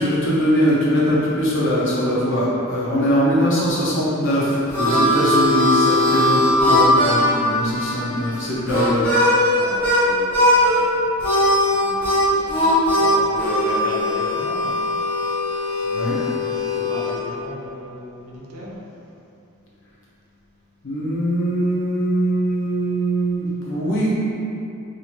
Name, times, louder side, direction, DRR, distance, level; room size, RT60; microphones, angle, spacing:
voice 1, 0.0-6.4 6.6-9.2 15.9-16.2 20.8-24.1, equal, 55° left, -7 dB, 0.9 m, -21 dB
Harmonica, 4.2-10.0 10.3-10.8 11.2-17.2, left 1 dB, 10° left, 0.9 m, -19 dB
voice 2, 9.5-11.4 11.7-14.8 15.6-16.1 16.4-18.7, right 1 dB, 75° right, -5 dB, 0.7 m, -35 dB
2.8 x 2.7 x 4.4 m, 2.7 s
head